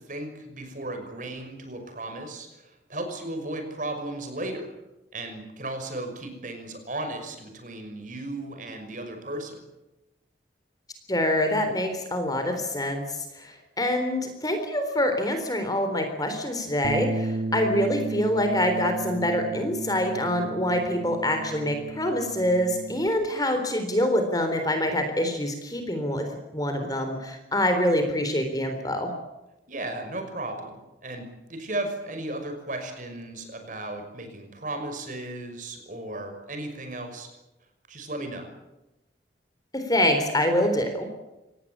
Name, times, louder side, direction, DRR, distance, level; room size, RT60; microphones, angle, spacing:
voice 1, 0.0-4.7 5.1-9.6 29.7-37.3 37.9-38.5, right 2 dB, 45° right, 6 dB, 5.8 m, -35 dB
voice 2, 11.1-26.3 26.5-29.1 39.7-41.1, left 1 dB, 20° left, 6 dB, 3.8 m, -25 dB
Bass guitar, 16.8-23.1, right 3 dB, 70° right, 1.7 m, -33 dB
26.0 x 19.0 x 8.8 m, 0.98 s
head